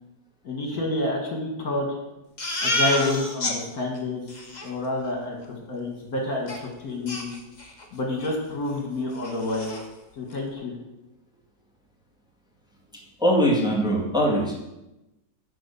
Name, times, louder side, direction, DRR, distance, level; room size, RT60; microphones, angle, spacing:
voice 1, 0.4-1.9 2.6-4.2 4.6-7.3 7.9-9.7 10.2-10.8, left 2 dB, 55° left, 0 dB, 2.4 m, -28 dB
Crying sobbing, 2.4-3.6 4.0-4.1 4.3-4.7 6.5-6.6 7.1-7.8 8.2-8.4 8.7-8.8 9.1-9.8, left 1 dB, 25° left, 1.7 m, -29 dB
voice 2, 13.2-14.5, equal, ahead, -4 dB, 2.1 m, -21 dB
11.5 x 5.1 x 7.1 m, 0.96 s
omnidirectional pair, 1.9 m